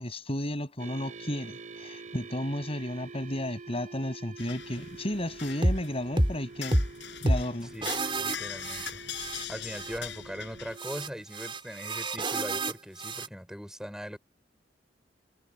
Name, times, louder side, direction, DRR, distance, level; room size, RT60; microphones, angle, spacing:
voice 1, 0.0-6.8 7.2-7.7, left 1 dB, 35° left, 6.5 m, -33 dB
sound 1, 0.8-11.1, right 4 dB, 45° right, 3.2 m, -47 dB
sound 2, 4.4-10.8, left 9 dB, 75° left, 4.4 m, -42 dB
sound 3, 5.6-5.8 6.2-6.4 6.7-6.9 7.3-7.5 7.8-9.4 9.7-10.0 10.8-13.3, right 1 dB, 30° right, 4.3 m, -29 dB
voice 2, 8.2-9.0 9.5-14.2, equal, 5° right, 5.1 m, -40 dB
head